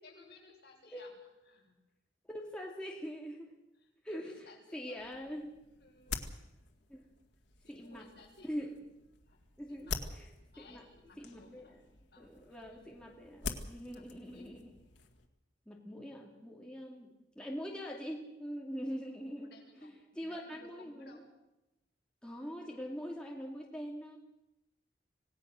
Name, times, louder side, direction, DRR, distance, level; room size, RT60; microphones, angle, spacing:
voice 1, 0.0-1.1 1.5-1.8 3.8-5.3 5.8-6.2 7.6-8.5 9.3-9.4 9.7-10.1 10.5-11.8 12.1-12.9 13.9-14.5 19.4-21.3 22.6-22.7, left 3 dB, 60° left, -2 dB, 7.2 m, -59 dB
voice 2, 2.3-3.5 4.0-5.5 6.9-7.1 7.7-8.1 8.4-8.7 9.6-10.9 11.2-11.8 12.2-14.7 15.7-21.2 22.2-24.2, equal, 5° left, -1 dB, 2.5 m, -43 dB
sound 1, 5.0-15.3, left 4 dB, 80° left, 2.0 m, -46 dB
27.0 x 18.0 x 6.4 m, 0.95 s
head